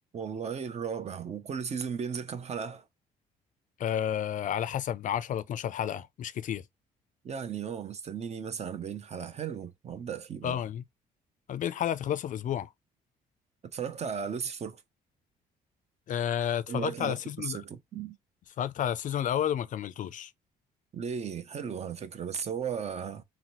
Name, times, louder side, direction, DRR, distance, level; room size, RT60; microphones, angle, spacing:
voice 1, 0.1-2.8 7.2-10.6 13.7-14.8 16.7-18.1 20.9-23.2, right 7 dB, 40° right, 0.6 m, -36 dB
voice 2, 3.8-6.6 10.4-10.8 11.5-12.7 16.1-17.6 18.6-20.3, left 10 dB, 55° left, 0.4 m, -31 dB
4.0 x 2.0 x 3.0 m
cardioid pair, 80°, 16 cm